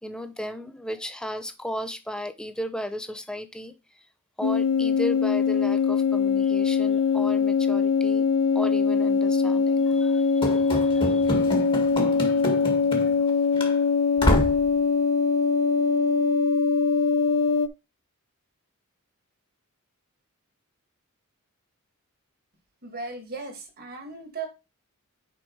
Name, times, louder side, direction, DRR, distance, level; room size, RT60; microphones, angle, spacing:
voice 1, 0.0-4.0 4.4-8.3 8.5-11.3 11.7-11.8 12.2-12.8 13.0-13.2, equal, 5° left, 0.7 m, -35 dB
sound 1, 4.4-17.7, left 5 dB, 75° left, 0.5 m, -22 dB
Run / Slam, 10.4-13.3 13.6-13.7 14.2-14.7, equal, 25° left, 1.7 m, -27 dB
voice 2, 22.8-24.5, right 4 dB, 45° right, 1.9 m, -36 dB
6.1 x 5.2 x 4.5 m
head